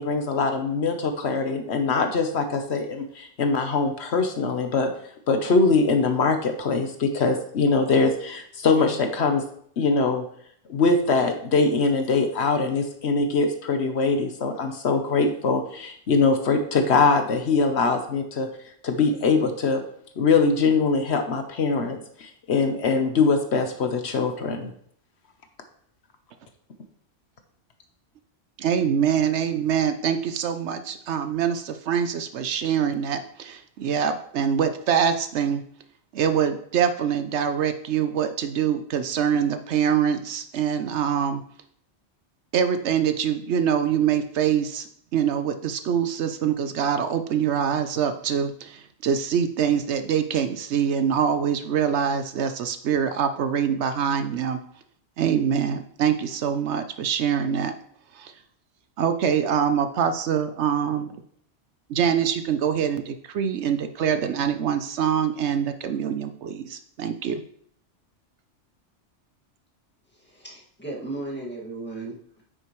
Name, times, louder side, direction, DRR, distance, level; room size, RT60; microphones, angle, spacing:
voice 1, 0.0-4.9 5.3-9.4 9.8-10.2 10.7-18.5 18.8-19.8 20.2-24.7, left 4 dB, 65° left, 6 dB, 1.1 m, -22 dB
voice 2, 28.6-35.6 36.1-41.4 42.5-44.9 45.1-54.6 55.2-57.7 58.2-58.3 59.0-61.2 61.9-67.4, right 8 dB, 70° right, 9 dB, 0.9 m, -24 dB
voice 3, 70.2-72.4, right 2 dB, 10° left, -4 dB, 1.9 m, -35 dB
9.2 x 6.4 x 3.1 m, 0.63 s
omnidirectional pair, 1.2 m